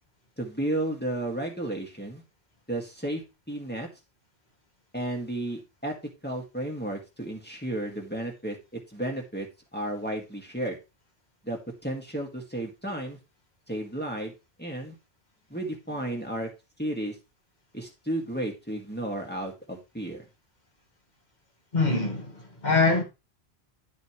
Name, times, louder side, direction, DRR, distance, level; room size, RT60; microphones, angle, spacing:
voice 1, 0.4-2.2 2.7-3.2 3.5-3.9 4.9-5.9 6.2-10.8 11.4-13.2 13.7-14.3 14.6-15.0 15.5-16.5 16.8-17.2 17.7-20.3, right 1 dB, 10° left, 1.9 m, -33 dB
voice 2, 21.7-23.0, left 3 dB, 45° left, 2.0 m, -24 dB
9.6 x 6.9 x 3.1 m
omnidirectional pair, 1.1 m